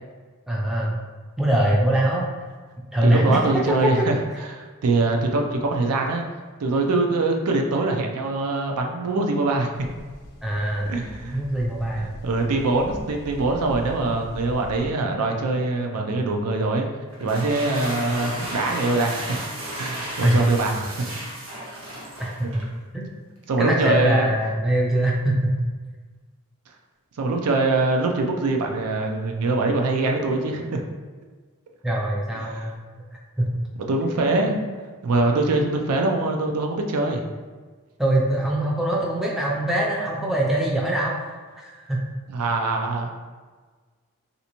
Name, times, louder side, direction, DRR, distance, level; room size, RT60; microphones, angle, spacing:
voice 1, 0.5-0.9 1.4-2.3 2.9-3.4 3.8-4.1 10.4-10.9 11.3-12.1 18.1-18.2 20.2-20.4 22.2-22.3 22.9-23.2 23.6-25.6 31.8-32.7 33.4-33.5 38.0-42.0, right 1 dB, ahead, -4 dB, 0.4 m, -22 dB
voice 2, 3.0-6.2 6.6-9.9 10.9-11.4 12.2-16.9 17.2-19.4 19.8-20.9 23.5-24.3 27.2-30.8 32.4-32.7 33.9-34.6 35.0-37.3 42.3-43.1, right 2 dB, 90° right, 2 dB, 0.4 m, -23 dB
sound 1, 9.7-14.9, equal, 90° left, 0.6 m, -41 dB
sound 2, 17.1-22.7, equal, 70° right, 0.8 m, -34 dB
3.3 x 2.7 x 2.9 m, 1.4 s
head